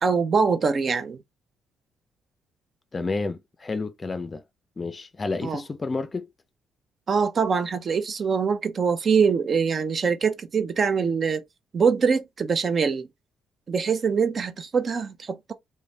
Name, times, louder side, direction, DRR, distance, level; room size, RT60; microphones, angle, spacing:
voice 1, 0.0-1.2 5.4-5.6 7.1-11.4 11.7-13.1 13.7-15.5, right 5 dB, 45° right, 0.5 m, -23 dB
voice 2, 2.9-4.4 4.8-6.3, left 3 dB, 30° left, 0.4 m, -30 dB
3.1 x 2.2 x 2.6 m
cardioid pair, 90°, 0 cm